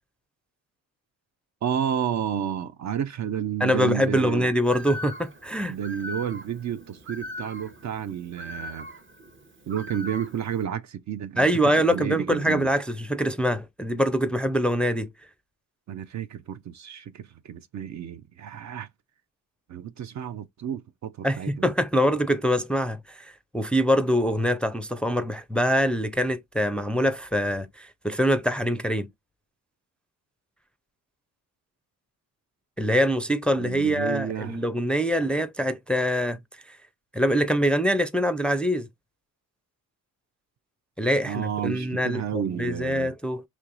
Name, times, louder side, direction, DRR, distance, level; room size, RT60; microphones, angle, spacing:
voice 1, 1.6-4.5 5.7-8.9 9.7-12.7 15.9-18.9 19.7-21.7 33.6-34.6 41.3-43.1, right 9 dB, 50° right, 0.5 m, -31 dB
voice 2, 3.6-5.8 11.4-15.1 21.2-29.1 32.8-36.4 36.7-36.8 37.1-38.9 41.0-43.4, equal, 5° left, 0.4 m, -24 dB
Bird, 4.6-10.6, left 1 dB, 35° right, 0.9 m, -40 dB
4.4 x 3.0 x 2.4 m
cardioid pair, 75°, 36 cm